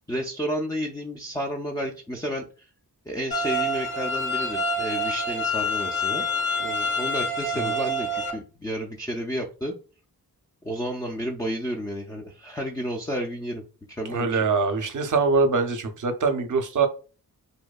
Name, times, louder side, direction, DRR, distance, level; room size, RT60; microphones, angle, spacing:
voice 1, 0.0-2.7 3.1-6.2 6.6-9.7 10.6-13.6 13.9-14.4, equal, 10° left, 1 dB, 0.4 m, -31 dB
sound 1, 3.3-8.3, left 1 dB, 75° left, 1.4 m, -27 dB
voice 2, 14.1-16.9, right 4 dB, 50° right, 7 dB, 0.6 m, -23 dB
2.7 x 2.1 x 2.3 m, 0.35 s
cardioid pair, 60°, 38 cm